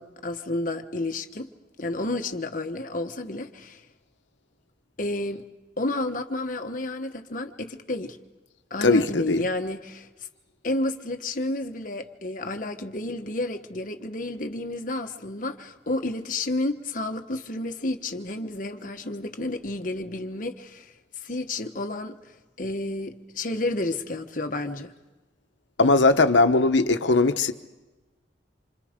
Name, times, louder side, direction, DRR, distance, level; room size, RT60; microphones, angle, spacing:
voice 1, 0.0-1.5 1.8-3.8 5.0-5.4 5.8-8.2 8.7-10.1 10.6-22.2 22.6-24.9, left 2 dB, 45° left, 1.2 m, -31 dB
voice 2, 8.8-9.4 25.8-27.5, left 3 dB, 90° left, 1.1 m, -19 dB
27.5 x 25.5 x 5.2 m
head